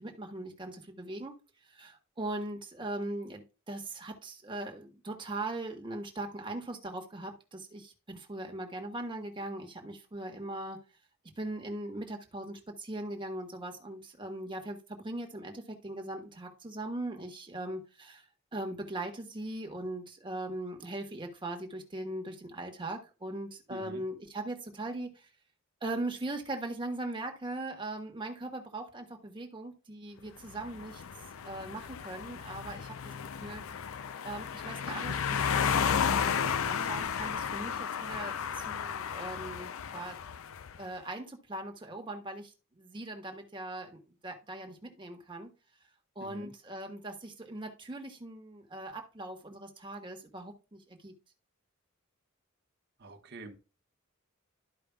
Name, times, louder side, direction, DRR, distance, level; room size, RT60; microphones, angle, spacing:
voice 1, 0.0-1.4 1.7-10.8 11.4-18.3 18.5-25.3 25.8-31.0 31.4-33.1 33.4-33.6 34.2-40.2 40.8-45.5 46.1-51.1, right 2 dB, 25° right, 3 dB, 1.4 m, -40 dB
voice 2, 23.7-24.0 46.2-46.5 53.0-53.6, right 2 dB, 50° right, 4 dB, 1.2 m, -46 dB
sound 1, 30.5-40.8, left 7 dB, 70° left, 0.5 m, -33 dB
13.0 x 5.0 x 2.3 m, 0.31 s
head